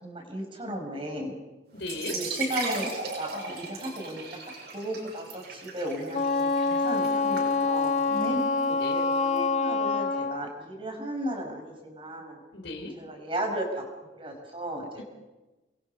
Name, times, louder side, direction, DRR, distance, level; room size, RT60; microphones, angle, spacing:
voice 1, 0.0-1.3 2.1-2.9 3.2-4.2 4.7-8.4 8.9-12.4 13.0-13.8 14.1-15.0, right 1 dB, 30° right, 2 dB, 5.4 m, -35 dB
voice 2, 1.7-2.2 8.1-8.4 8.7-8.9 12.5-12.9, left 2 dB, 75° left, 4 dB, 4.1 m, -35 dB
sound 1, 1.8-9.4, right 3 dB, 60° right, 7.8 m, -38 dB
Wind instrument woodwind instrument, 6.1-10.4, left 4 dB, 35° left, 1.6 m, -26 dB
30.0 x 23.0 x 5.7 m, 1.1 s
head